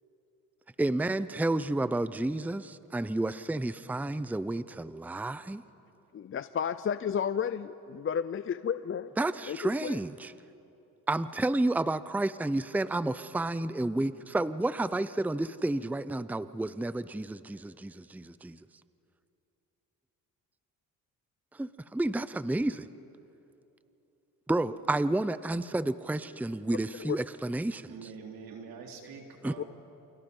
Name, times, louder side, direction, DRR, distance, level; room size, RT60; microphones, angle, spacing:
voice 1, 0.8-5.6 9.2-10.3 11.1-18.6 21.5-22.9 24.5-27.9 29.4-29.5, right 2 dB, 5° right, 15 dB, 0.6 m, -31 dB
voice 2, 6.1-9.1 9.5-10.0 27.0-27.2 29.6-29.7, left 8 dB, 35° left, 13 dB, 0.7 m, -32 dB
voice 3, 27.9-29.7, right 6 dB, 80° right, 1 dB, 3.8 m, -45 dB
29.5 x 28.0 x 5.5 m, 2.9 s
supercardioid pair, 75°, 35 cm